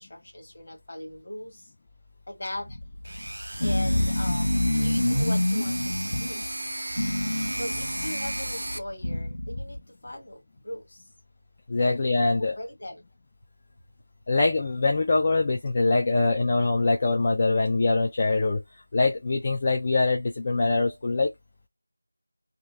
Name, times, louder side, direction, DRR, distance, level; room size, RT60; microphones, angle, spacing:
voice 1, 0.0-1.7 2.3-2.7 3.6-6.4 7.5-11.0 11.8-12.0 12.4-13.0, left 1 dB, 45° left, 1.5 m, -39 dB
sound 1, 2.6-6.5 6.9-9.8, left 1 dB, 65° left, 1.2 m, -27 dB
sound 2, 3.0-8.8, right 1 dB, 70° right, 0.5 m, -34 dB
voice 2, 11.7-12.5 14.3-18.6 18.9-21.3, left 3 dB, 25° left, 0.3 m, -23 dB
2.8 x 2.5 x 3.3 m
figure-of-eight pair, 175°, 0 cm